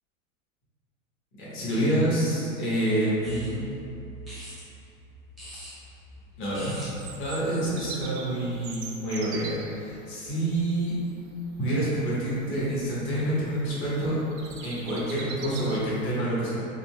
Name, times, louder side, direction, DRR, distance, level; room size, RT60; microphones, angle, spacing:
voice 1, 1.4-3.6 6.4-6.7 7.2-11.0 11.6-14.2 14.6-16.7, right 1 dB, 30° left, -9 dB, 1.1 m, -27 dB
sound 1, 3.2-8.1, right 2 dB, ahead, 0.7 m, -44 dB
Bird vocalization bird call bird song, 6.5-16.2, right 5 dB, 55° right, 0.5 m, -44 dB
3.7 x 2.8 x 2.2 m, 2.8 s
hypercardioid pair, 130°, 41 cm